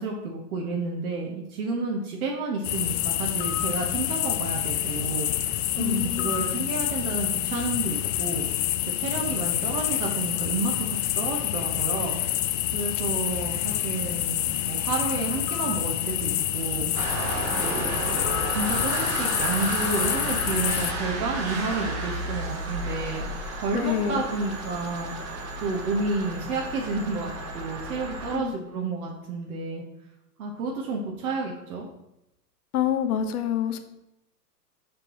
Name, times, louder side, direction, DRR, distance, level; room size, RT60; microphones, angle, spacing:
voice 1, 0.0-8.5 9.0-12.2 12.7-16.9 17.5-18.0 18.5-29.8 30.4-31.9, right 3 dB, 60° right, -1 dB, 1.3 m, -31 dB
sound 1, 2.6-20.9, left 13 dB, 50° left, 0.6 m, -27 dB
voice 2, 5.8-6.3 23.7-24.2 28.3-28.5 32.7-33.8, left 9 dB, 70° left, 7 dB, 1.1 m, -27 dB
sound 2, 16.9-28.4, right 2 dB, 30° right, 1.3 m, -32 dB
6.7 x 5.4 x 3.1 m, 0.88 s
hypercardioid pair, 115°, 48 cm